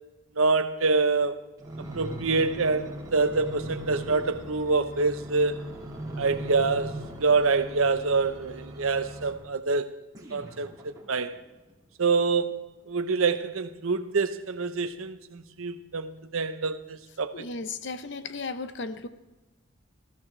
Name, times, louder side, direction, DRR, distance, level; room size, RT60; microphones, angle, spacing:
voice 1, 0.4-1.4 1.9-5.6 6.2-9.9 10.3-11.4 12.0-12.6 12.9-17.5, right 4 dB, 75° right, 0.9 m, -26 dB
sound 1, 1.6-9.5 10.1-11.4 12.0-12.1, right 1 dB, 20° right, 2.4 m, -39 dB
voice 2, 17.3-19.1, left 3 dB, 55° left, 0.8 m, -35 dB
19.5 x 14.5 x 3.3 m
head